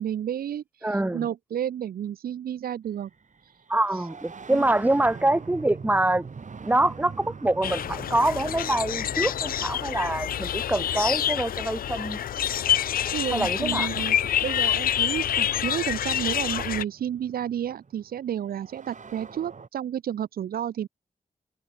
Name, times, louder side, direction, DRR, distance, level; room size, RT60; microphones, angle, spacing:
voice 1, 0.0-3.1 3.4-3.5 4.5-4.7 13.1-20.9, right 10 dB, 90° right, 1.0 m, -31 dB
voice 2, 0.8-1.3 3.7-6.3 6.6-12.2 13.3-13.9, right 1 dB, 10° right, 0.7 m, -25 dB
sound 1, 2.9-13.5 14.8-14.9 15.9-19.7, right 5 dB, 55° right, 2.6 m, -44 dB
sound 2, 7.6-16.8, left 10 dB, 75° left, 0.4 m, -27 dB
cardioid pair, 50°, 15 cm